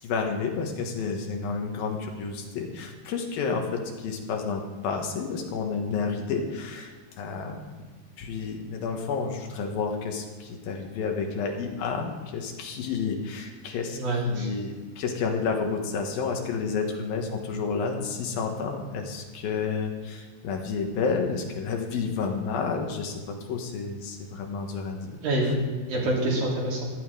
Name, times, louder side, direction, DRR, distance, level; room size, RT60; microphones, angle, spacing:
voice 1, 0.0-7.9 8.2-25.2 25.4-25.6 25.9-26.1, left 5 dB, 80° left, 3 dB, 3.2 m, -30 dB
voice 2, 14.0-14.5 25.2-26.8, right 1 dB, 70° right, -3 dB, 4.8 m, -26 dB
15.0 x 11.0 x 4.8 m, 1.4 s
omnidirectional pair, 4.1 m